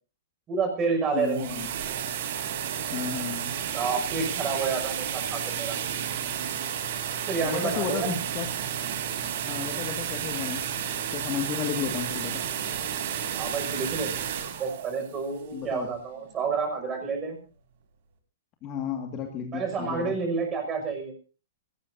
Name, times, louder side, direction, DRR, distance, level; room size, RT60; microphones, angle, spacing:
voice 1, 0.5-1.7 3.7-5.8 7.2-8.2 13.3-14.1 14.6-17.4 19.5-21.1, right 5 dB, 15° right, 4 dB, 6.1 m, -29 dB
sound 1, 1.0-16.0, right 9 dB, 45° right, 3.5 m, -32 dB
voice 2, 1.1-1.7 2.9-3.5 7.4-8.5 9.4-10.6 11.1-12.4 15.5-15.9 18.6-20.1, left 7 dB, 25° left, 4 dB, 2.0 m, -33 dB
22.0 x 18.5 x 2.7 m, 0.36 s
hypercardioid pair, 165°, 0 cm